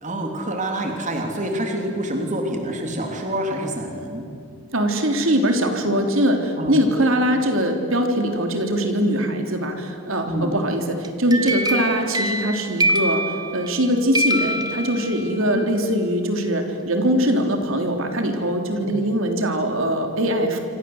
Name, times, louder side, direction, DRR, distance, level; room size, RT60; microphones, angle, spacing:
voice 1, 0.0-4.3 6.6-6.8 10.2-10.5 15.4-15.6 18.8-19.0, right 1 dB, 35° right, 2 dB, 3.2 m, -27 dB
voice 2, 4.7-20.6, equal, 65° right, 4 dB, 3.5 m, -22 dB
sound 1, 11.0-13.8 14.1-15.4, right 1 dB, 15° right, 1.9 m, -24 dB
27.0 x 27.0 x 8.0 m, 2.4 s
head